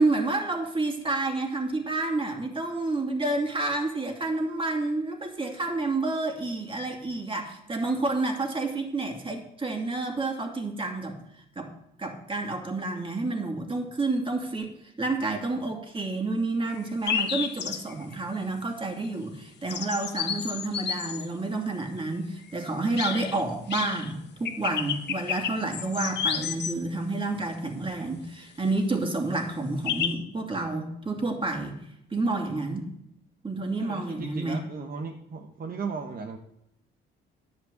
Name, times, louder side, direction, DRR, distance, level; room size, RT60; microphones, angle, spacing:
voice 1, 0.0-11.2 11.6-11.7 12.0-14.7 15.0-31.8 32.1-32.9 33.4-34.6, right 2 dB, 25° right, 3 dB, 2.5 m, -29 dB
sound 1, 16.7-16.8 17.1-18.1 19.7-21.3 23.0-23.4 23.7-24.1 24.4-26.7 29.9-30.1, left 8 dB, 60° left, 1.2 m, -31 dB
voice 2, 33.8-36.4, right 5 dB, 45° right, 4 dB, 1.1 m, -36 dB
10.5 x 5.1 x 8.2 m, 0.80 s
cardioid pair, 90°, 20 cm